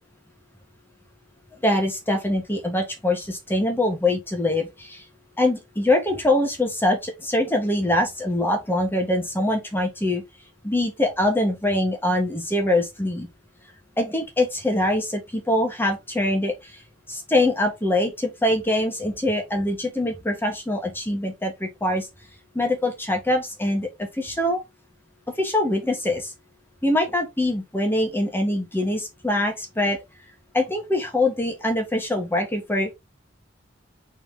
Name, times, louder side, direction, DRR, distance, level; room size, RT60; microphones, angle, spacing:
voice 1, 1.6-5.0 5.4-10.2 10.6-13.3 14.0-16.8 17.1-22.1 22.5-23.9 24.1-24.6 25.4-26.3 26.8-30.0 30.5-32.9, left 1 dB, 10° left, 1.4 m, -23 dB
4.0 x 3.5 x 3.7 m
head